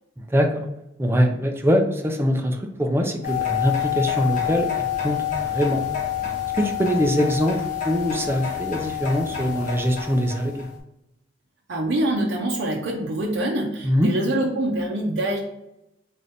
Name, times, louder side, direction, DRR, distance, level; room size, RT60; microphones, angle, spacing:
voice 1, 0.3-0.6 1.0-4.7 5.0-5.8 6.5-7.6 7.9-10.7 13.8-14.1, equal, 15° right, 3 dB, 0.4 m, -22 dB
sound 1, 3.2-10.7, left 11 dB, 45° left, 1.0 m, -27 dB
voice 2, 11.7-15.4, right 1 dB, 75° right, -2 dB, 0.6 m, -25 dB
3.7 x 2.8 x 3.4 m, 0.89 s
head